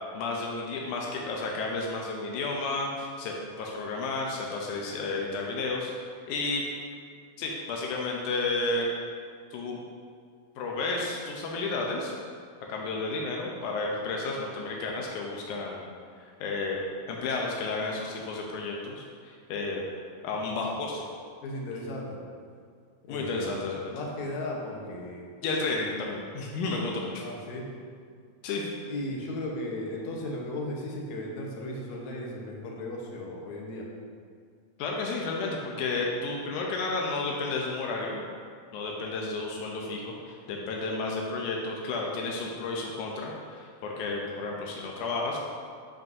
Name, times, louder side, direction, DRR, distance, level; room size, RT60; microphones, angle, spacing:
voice 1, 0.1-5.9 6.3-6.6 7.4-8.9 9.5-9.8 10.6-12.1 12.7-15.9 16.2-16.8 17.1-19.8 20.2-21.0 23.1-23.9 25.4-27.2 28.4-28.7 34.8-38.3 38.7-45.4, left 3 dB, 90° left, -1 dB, 2.2 m, -32 dB
voice 2, 21.4-22.2 23.0-25.3 27.2-27.7 28.9-33.9, left 1 dB, 70° left, -1 dB, 2.3 m, -36 dB
13.0 x 5.3 x 2.7 m, 2.1 s
omnidirectional pair, 3.5 m